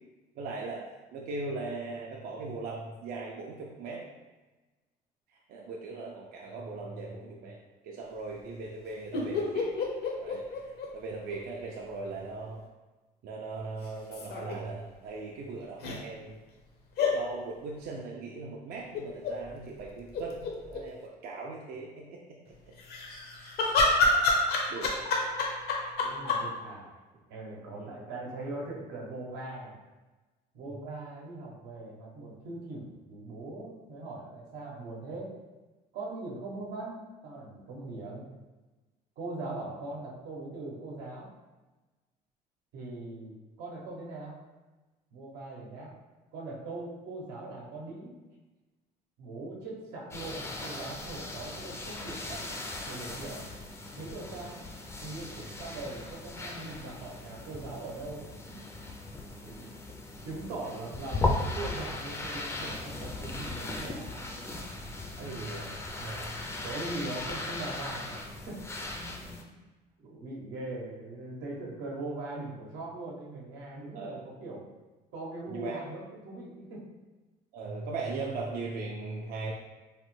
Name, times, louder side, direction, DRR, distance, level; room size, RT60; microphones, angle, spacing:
voice 1, 0.4-0.9 1.1-4.0 5.3-7.6 7.8-9.7 10.2-12.6 13.2-16.4 17.1-22.7 23.4-23.6 24.7-25.1 27.8-27.9 30.7-30.8 65.2-66.4 73.9-74.2 75.5-75.8 77.5-79.5, right 3 dB, 65° right, -2 dB, 0.4 m, -39 dB
sound 1, 9.1-11.4 11.6-11.7 13.8-14.6 15.8-16.0 17.0-17.2 18.9-19.3 19.8-19.9 20.1-20.8 22.8-26.4, left 3 dB, 70° left, 0.6 m, -28 dB
voice 2, 26.0-27.0 27.3-29.8 30.5-35.3 35.9-38.3 39.2-41.3 42.7-44.4 45.1-46.0 46.3-48.1 49.2-53.5 54.0-54.6 55.0-58.2 58.5-59.0 59.4-59.7 60.2-64.6 66.6-69.4 70.0-74.7 75.1-76.8, right 2 dB, 90° right, -3 dB, 0.8 m, -41 dB
sound 2, 50.1-69.4, left 2 dB, 15° left, 0.3 m, -38 dB
3.1 x 2.1 x 3.1 m, 1.2 s
cardioid pair, 110°, 17 cm